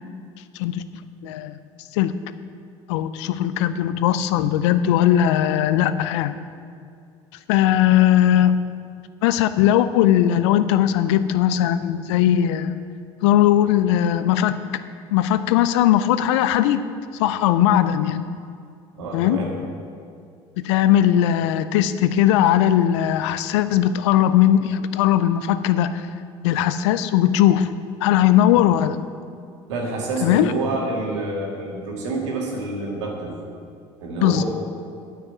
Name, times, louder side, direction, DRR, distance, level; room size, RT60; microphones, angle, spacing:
voice 1, 1.2-1.6 1.9-2.1 2.9-6.4 7.5-8.6 9.2-12.8 13.2-14.7 15.1-16.8 17.2-18.3 19.1-19.5 20.6-26.1 26.4-29.0 30.2-30.5 34.2-34.4, left 11 dB, 75° left, 13 dB, 0.5 m, -19 dB
voice 2, 18.9-19.5 29.7-33.3 34.0-34.4, right 2 dB, 80° right, -2 dB, 2.2 m, -28 dB
9.5 x 5.8 x 7.5 m, 2.3 s
hypercardioid pair, 65°, 15 cm